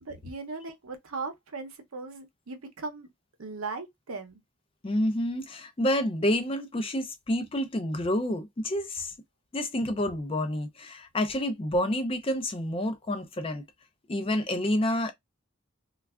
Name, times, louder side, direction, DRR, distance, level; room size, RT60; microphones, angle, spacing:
voice 1, 0.0-3.1 3.4-4.4, right 3 dB, 85° right, 0.7 m, -38 dB
voice 2, 4.8-9.1 9.5-13.6 14.1-15.1, left 1 dB, 25° left, 0.4 m, -28 dB
3.2 x 2.3 x 2.3 m
head